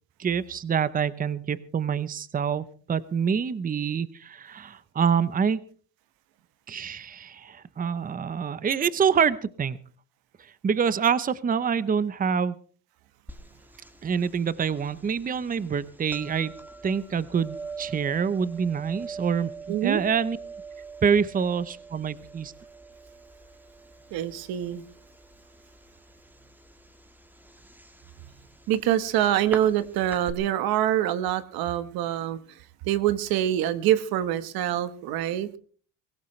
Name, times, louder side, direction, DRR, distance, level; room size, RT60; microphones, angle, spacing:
voice 1, 0.2-5.6 6.7-9.8 10.4-12.6 14.0-16.5 16.8-20.4 21.0-22.5, right 7 dB, 25° right, 0.8 m, -26 dB
sound 1, 13.3-30.3, right 3 dB, 5° right, 1.7 m, -44 dB
voice 2, 19.7-20.0 24.1-24.8 28.7-32.4 32.8-35.6, right 12 dB, 85° right, 1.4 m, -25 dB
23.5 x 16.0 x 3.2 m
cardioid pair, 125°, 35 cm